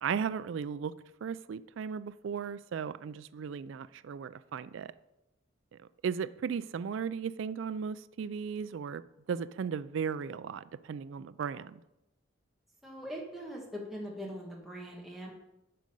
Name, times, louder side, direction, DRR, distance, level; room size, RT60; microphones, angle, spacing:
voice 1, 0.0-0.9 1.2-4.9 6.0-9.0 9.3-11.8, right 6 dB, 70° right, 0.3 m, -36 dB
voice 2, 12.8-15.3, equal, ahead, 1.3 m, -41 dB
11.0 x 5.2 x 5.4 m
head